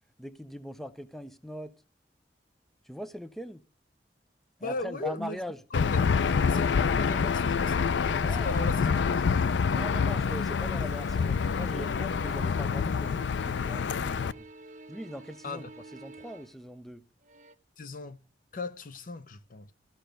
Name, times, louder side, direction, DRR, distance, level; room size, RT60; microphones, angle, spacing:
voice 1, 0.2-1.7 2.8-3.6 4.6-5.6 6.0-6.1 8.1-8.6 9.7-14.5 14.9-17.1, equal, ahead, 0.5 m, -41 dB
voice 2, 4.6-5.4 5.7-6.0 6.5-8.0 8.4-8.9 15.4-15.7 17.8-18.2 18.5-19.7, left 3 dB, 50° left, 0.7 m, -37 dB
Aircraft / Engine, 5.7-14.3, left 5 dB, 85° left, 0.4 m, -27 dB
sound 1, 9.9-10.4 10.7-12.6 12.9-16.7 17.2-17.5, right 3 dB, 45° right, 0.9 m, -51 dB
14.0 x 5.7 x 5.1 m
head